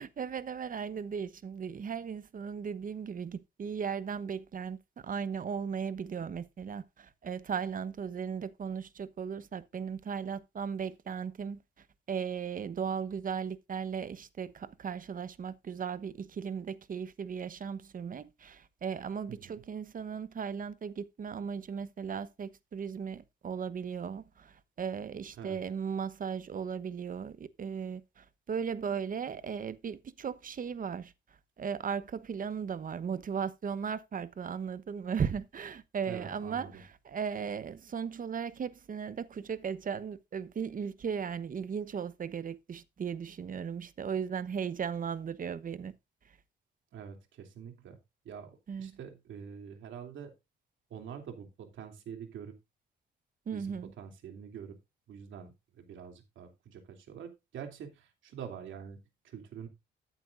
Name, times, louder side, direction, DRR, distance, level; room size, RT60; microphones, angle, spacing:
voice 1, 0.0-4.8 5.0-11.6 12.1-31.1 31.6-45.9 48.7-48.9 53.5-53.9, right 7 dB, 45° right, 1.0 m, -37 dB
voice 2, 19.3-19.6 25.4-25.6 36.1-36.8 46.9-48.0 48.2-50.3 50.9-52.5 53.5-54.8 55.1-59.7, right 7 dB, 75° right, 2.9 m, -46 dB
14.0 x 9.0 x 2.6 m
cardioid pair, 90°, 20 cm